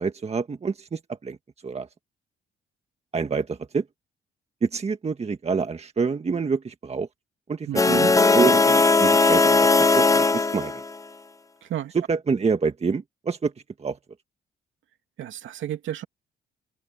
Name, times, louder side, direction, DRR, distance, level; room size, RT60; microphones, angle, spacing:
voice 1, 0.0-1.4 1.6-1.9 3.1-3.8 4.6-7.1 7.5-10.8 11.9-13.5 13.8-14.0, right 5 dB, 30° right, 1.6 m, -27 dB
voice 2, 7.7-8.1 11.6-11.9 15.2-16.0, right 11 dB, 75° right, 2.6 m, -32 dB
sound 1, 7.8-11.0, left 3 dB, 15° left, 0.8 m, -18 dB
open air
cardioid pair, 90°, 20 cm